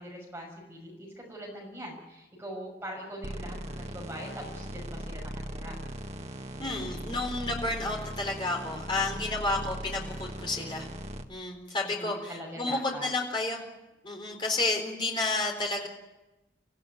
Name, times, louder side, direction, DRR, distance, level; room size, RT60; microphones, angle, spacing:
voice 1, 0.0-5.8 9.3-9.7 11.8-13.1, equal, 10° right, -1 dB, 5.9 m, -42 dB
sound 1, 3.2-11.2, equal, 35° right, 1.3 m, -39 dB
voice 2, 6.6-10.9 11.3-13.6 14.0-15.9, left 2 dB, 25° left, 1 dB, 4.2 m, -31 dB
26.0 x 15.5 x 9.3 m, 1.0 s
head